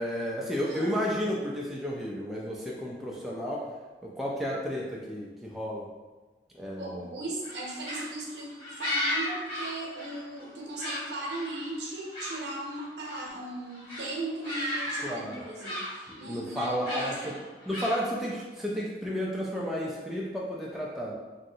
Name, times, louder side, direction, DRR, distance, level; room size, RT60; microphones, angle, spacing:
voice 1, 0.0-3.7 4.0-5.9 6.5-7.1 15.0-15.4 16.2-17.1 17.7-21.1, equal, ahead, -4 dB, 0.3 m, -32 dB
voice 2, 0.6-1.0 4.5-4.6 6.8-17.4, right 2 dB, 80° right, -2 dB, 0.7 m, -37 dB
sound 1, 7.4-10.5 10.7-12.4 12.7-13.3 13.7-14.0 14.4-15.0 15.3-16.2 16.8-18.3, left 1 dB, 25° left, 1.2 m, -35 dB
3.1 x 2.6 x 2.7 m, 1.2 s
head